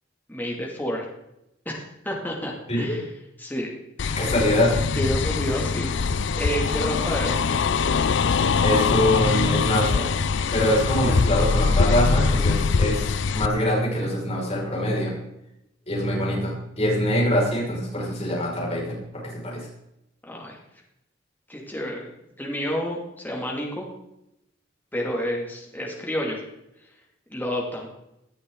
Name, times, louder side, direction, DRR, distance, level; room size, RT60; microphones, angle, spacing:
voice 1, 0.3-1.1 1.7-3.0 3.4-3.7 5.0-5.9 6.3-7.4 20.3-20.6 21.5-22.1 22.4-23.9 24.9-26.4 27.3-27.9, equal, 10° left, -1 dB, 2.4 m, -29 dB
sound 1, 4.0-13.5, left 5 dB, 70° left, 0.5 m, -23 dB
voice 2, 4.2-4.7 8.6-10.1 10.5-15.1 15.9-19.0 19.4-19.6, left 1 dB, 35° left, -5 dB, 5.7 m, -24 dB
18.5 x 10.5 x 3.9 m, 0.85 s
head